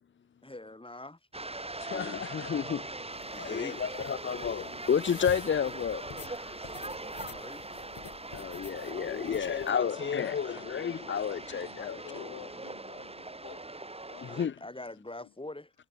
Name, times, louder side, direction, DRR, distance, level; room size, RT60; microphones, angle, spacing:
voice 1, 0.4-1.2 3.3-4.0 6.6-7.6 14.3-15.7, left 2 dB, 10° left, 3.7 m, -44 dB
sound 1, 1.3-14.5, right 2 dB, 15° right, 2.0 m, -41 dB
voice 2, 1.8-2.9 3.3-6.5 8.3-12.2 14.2-14.5, left 7 dB, 30° left, 0.6 m, -31 dB
sound 2, 3.1-9.7, left 8 dB, 50° left, 3.5 m, -49 dB
voice 3, 9.8-13.6 13.9-14.5 15.1-15.3, left 17 dB, 80° left, 1.9 m, -50 dB
supercardioid pair, 55°, 43 cm